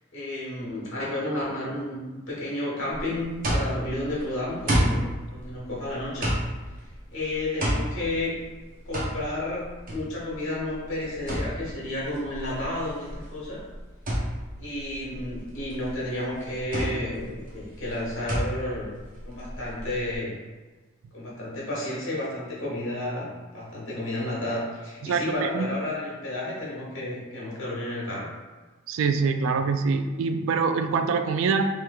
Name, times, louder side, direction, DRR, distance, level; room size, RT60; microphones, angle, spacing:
voice 1, 0.1-6.3 7.1-8.3 8.8-9.6 9.9-13.6 14.6-18.9 19.2-20.4 21.1-23.3 23.5-28.3, left 1 dB, 70° left, -6 dB, 1.3 m, -31 dB
sound 1, 2.9-20.2, equal, 45° right, 0.8 m, -31 dB
voice 2, 25.0-25.7 28.9-31.7, right 5 dB, 75° right, 7 dB, 0.3 m, -24 dB
3.3 x 3.1 x 2.3 m, 1.3 s
head